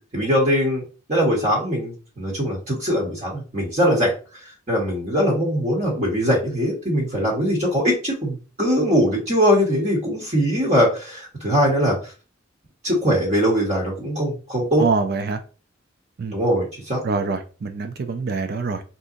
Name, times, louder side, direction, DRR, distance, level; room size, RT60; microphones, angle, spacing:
voice 1, 0.1-0.8 1.1-4.1 4.7-12.1 12.8-14.8 16.3-17.0, equal, 40° right, -3 dB, 1.1 m, -21 dB
voice 2, 14.8-15.4 16.2-16.4 17.0-18.8, right 4 dB, 55° right, 7 dB, 0.4 m, -25 dB
3.7 x 2.8 x 2.5 m, 0.35 s
head